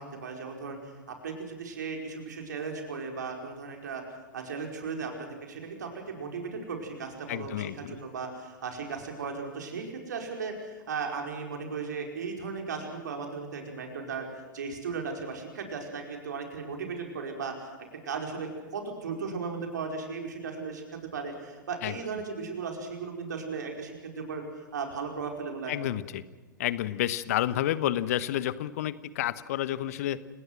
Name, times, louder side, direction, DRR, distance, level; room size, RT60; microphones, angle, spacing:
voice 1, 0.0-4.0 4.3-14.3 14.5-17.8 18.0-25.9, right 5 dB, 60° right, 3 dB, 5.0 m, -36 dB
voice 2, 7.3-8.0 21.8-22.0 25.7-26.2 26.6-30.2, left 13 dB, 50° left, 16 dB, 1.1 m, -30 dB
29.5 x 19.0 x 6.1 m, 1.3 s
figure-of-eight pair, 105°, 11 cm